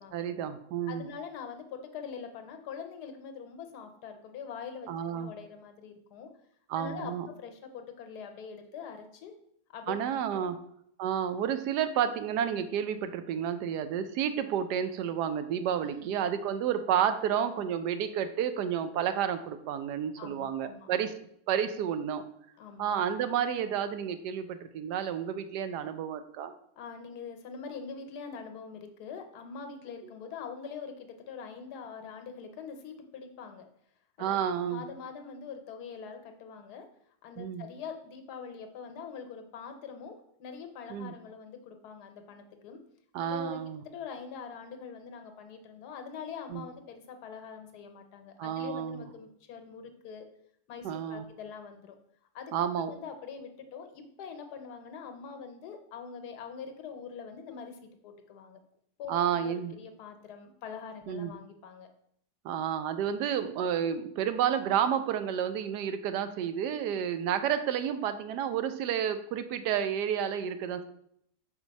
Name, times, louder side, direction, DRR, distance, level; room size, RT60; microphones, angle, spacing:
voice 1, 0.1-1.1 4.9-5.3 6.7-7.3 9.9-10.6 11.0-21.1 21.5-22.2 22.8-26.5 34.2-34.9 37.4-37.7 40.9-41.1 43.1-43.8 46.5-46.7 48.4-49.0 50.8-51.2 52.5-52.9 59.1-59.7 61.1-61.3 62.4-70.8, right 9 dB, 90° right, 10 dB, 1.2 m, -30 dB
voice 2, 0.9-6.3 6.7-9.3 9.7-10.5 15.8-16.1 20.2-20.9 22.6-22.9 26.8-33.7 34.2-36.9 37.2-42.8 43.2-50.3 50.7-52.0 52.3-58.6 59.0-61.9, left 6 dB, 75° left, 6 dB, 1.3 m, -44 dB
4.8 x 3.9 x 5.2 m, 0.71 s
omnidirectional pair, 1.7 m